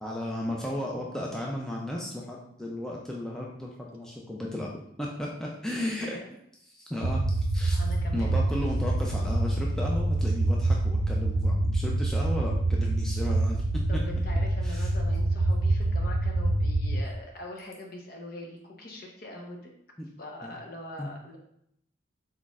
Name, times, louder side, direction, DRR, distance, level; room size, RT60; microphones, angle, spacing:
voice 1, 0.0-4.7 5.0-6.2 6.7-7.8 8.1-13.6 13.9-14.0 14.6-14.9 20.4-20.6 21.0-21.1, left 1 dB, 5° left, -3 dB, 0.4 m, -34 dB
voice 2, 6.0-6.3 7.7-8.4 13.9-19.7 20.2-21.4, left 1 dB, 50° left, 1 dB, 0.8 m, -42 dB
sound 1, 7.0-17.0, right 2 dB, 75° right, 0.4 m, -26 dB
4.2 x 4.1 x 2.4 m, 0.72 s
head